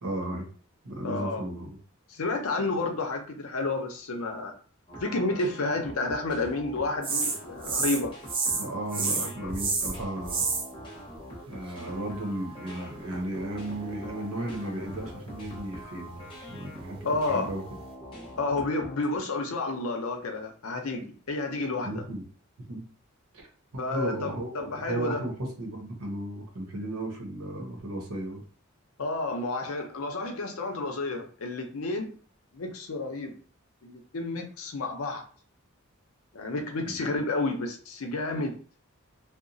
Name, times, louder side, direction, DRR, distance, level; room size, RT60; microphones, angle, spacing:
voice 1, 0.0-0.5 0.8-1.7 8.5-10.5 11.5-17.6 21.8-22.2 22.6-22.9 23.3-23.5 23.7-28.4 36.9-37.0, right 1 dB, 85° right, 2 dB, 0.8 m, -35 dB
voice 2, 1.0-1.4 2.1-4.5 5.0-8.1 9.2-9.3 17.0-17.5 18.3-22.0 23.8-25.2 29.0-32.1 32.5-33.3 33.8-35.3 36.3-38.5, left 2 dB, 80° left, 4 dB, 0.6 m, -30 dB
sound 1, 4.9-19.2, equal, 25° left, 0.7 m, -44 dB
sound 2, 7.0-8.0 8.3-8.7 8.9-10.7 14.8-15.8 16.3-16.4, right 4 dB, 25° right, 0.3 m, -29 dB
2.9 x 2.0 x 2.6 m, 0.42 s
head